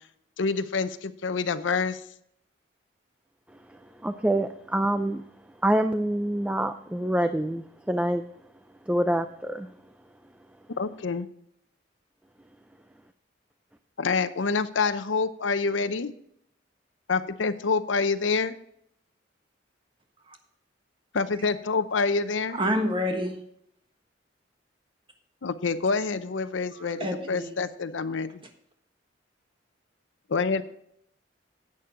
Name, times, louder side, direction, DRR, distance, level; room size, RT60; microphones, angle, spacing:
voice 1, 0.4-2.0 10.8-11.3 14.0-16.1 17.1-18.6 21.1-22.6 25.4-28.3 30.3-30.6, left 4 dB, 85° left, 0.6 m, -27 dB
voice 2, 3.7-5.2 5.6-8.2 8.9-9.7, right 1 dB, 5° right, 0.4 m, -26 dB
voice 3, 22.5-23.4 26.7-27.6, equal, 25° right, 1.4 m, -28 dB
11.0 x 8.6 x 3.8 m
head